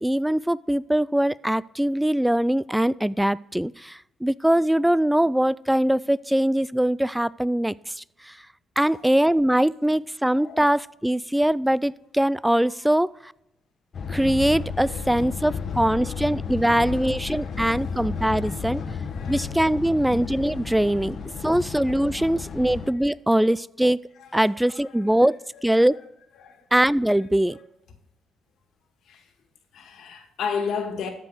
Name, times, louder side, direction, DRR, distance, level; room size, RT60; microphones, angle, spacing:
voice 1, 0.0-8.4 8.8-13.3 14.1-18.8 19.3-21.2 21.4-24.0 24.3-26.0 26.7-27.6, right 1 dB, 5° right, 0.3 m, -22 dB
voice 2, 10.3-10.7 14.8-19.6 22.2-22.3 23.0-23.2 24.2-25.2 25.5-25.9 26.4-26.7 27.4-27.6 29.1-29.3 29.7-31.1, left 6 dB, 75° left, 1.8 m, -37 dB
sound 1, 13.9-22.9, left 5 dB, 50° left, 1.1 m, -32 dB
13.5 x 5.3 x 6.2 m
cardioid pair, 90°, 0 cm